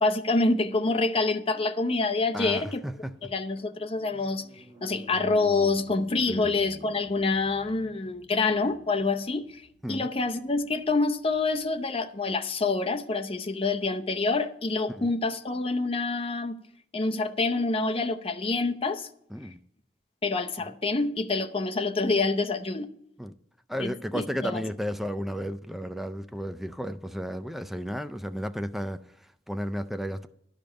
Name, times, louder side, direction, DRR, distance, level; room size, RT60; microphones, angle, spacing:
voice 1, 0.0-2.8 3.2-9.6 9.9-16.6 16.9-19.1 20.2-22.9 23.8-24.6, left 3 dB, 30° left, 0.7 m, -27 dB
voice 2, 2.3-3.3 6.3-6.5 9.8-10.1 14.9-15.1 19.3-19.6 23.2-23.3 23.7-30.3, equal, ahead, 0.3 m, -33 dB
sound 1, 2.7-11.6, equal, 25° right, 1.3 m, -50 dB
11.5 x 5.2 x 8.7 m
head